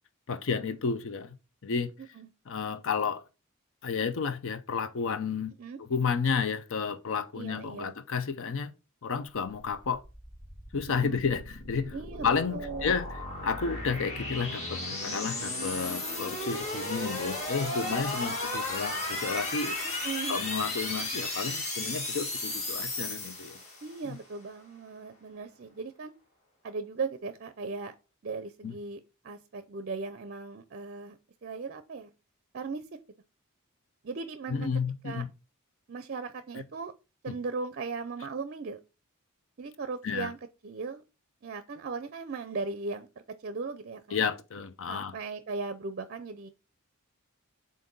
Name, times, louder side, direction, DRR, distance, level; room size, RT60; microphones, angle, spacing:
voice 1, 0.3-1.3 1.6-1.9 2.5-3.2 3.8-8.7 9.0-10.0 10.7-11.4 11.7-11.9 12.2-13.1 13.4-14.6 14.9-19.7 20.3-23.6 24.1-24.2 28.6-28.7 34.5-35.3 37.3-37.4 40.0-40.3 44.1-45.1, left 5 dB, 65° left, 0.6 m, -31 dB
voice 2, 7.3-7.9 11.0-11.2 11.9-12.9 17.9-18.6 19.8-20.4 23.8-26.1 26.6-27.9 28.2-32.1 32.5-32.9 34.0-34.7 35.0-35.2 35.9-36.9 37.2-38.8 39.6-40.4 40.6-41.0 41.4-43.1 43.4-44.2 44.9-46.5, right 4 dB, 45° right, 0.5 m, -38 dB
sound 1, 9.8-24.0, left 2 dB, 35° left, 1.9 m, -35 dB
7.5 x 2.6 x 5.3 m
head